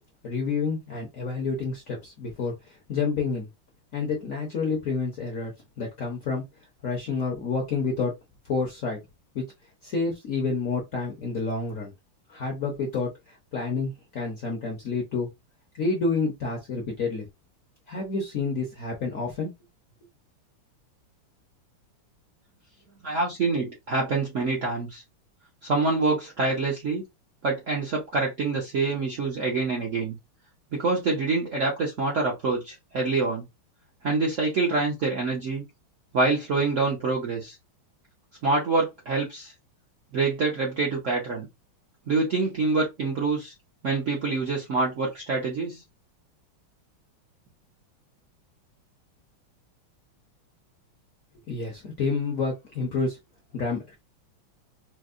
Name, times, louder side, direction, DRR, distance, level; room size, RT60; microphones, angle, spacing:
voice 1, 0.2-3.5 3.9-5.5 5.8-6.4 6.8-8.1 8.5-9.0 9.3-9.4 9.8-11.9 12.3-15.3 15.8-17.2 17.9-19.5 51.5-53.2 53.5-53.9, left 4 dB, 60° left, 0.9 m, -29 dB
voice 2, 23.0-25.0 25.6-27.0 27.4-30.2 30.7-33.4 34.0-35.6 36.1-37.6 38.4-39.5 40.1-41.5 42.1-43.5 43.8-45.8, right 3 dB, 60° right, 0.8 m, -26 dB
4.5 x 2.1 x 2.5 m
omnidirectional pair, 2.3 m